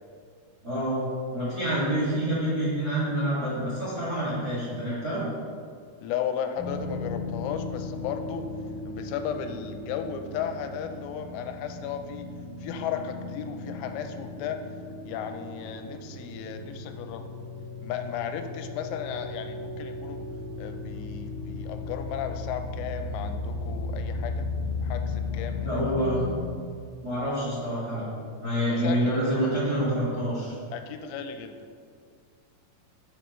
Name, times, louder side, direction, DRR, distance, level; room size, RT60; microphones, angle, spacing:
voice 1, 0.6-1.1 1.3-5.2 25.6-26.2 27.0-28.1 28.4-30.5, right 1 dB, 45° right, -10 dB, 1.1 m, -27 dB
voice 2, 6.0-8.4 8.9-12.3 12.6-14.6 15.0-17.3 17.8-20.3 20.6-24.5 24.8-25.8 28.7-29.2 30.7-31.6, left 8 dB, 90° left, 7 dB, 3.4 m, -35 dB
sound 1, 6.6-26.4, left 3 dB, 55° left, 3.5 m, -36 dB
12.5 x 6.7 x 3.1 m, 2.2 s
omnidirectional pair, 5.9 m